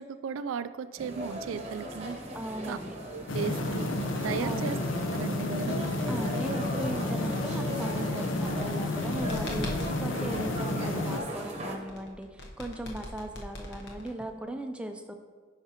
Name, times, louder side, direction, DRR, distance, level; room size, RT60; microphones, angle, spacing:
voice 1, 0.0-2.2 2.7-2.8 3.1-3.9 4.2-4.8 5.1-5.8, right 6 dB, 90° right, 13 dB, 0.3 m, -35 dB
sound 1, 1.0-11.8, equal, 30° right, 0.8 m, -38 dB
voice 2, 2.3-2.9 4.4-4.7 6.1-15.1, right 1 dB, 5° right, 5 dB, 0.4 m, -38 dB
sound 2, 3.3-11.2, left 2 dB, 75° left, 0.7 m, -31 dB
sound 3, 8.4-10.1 11.9-14.4, left 1 dB, 60° left, 1.0 m, -41 dB
9.1 x 5.8 x 2.9 m, 1.5 s
head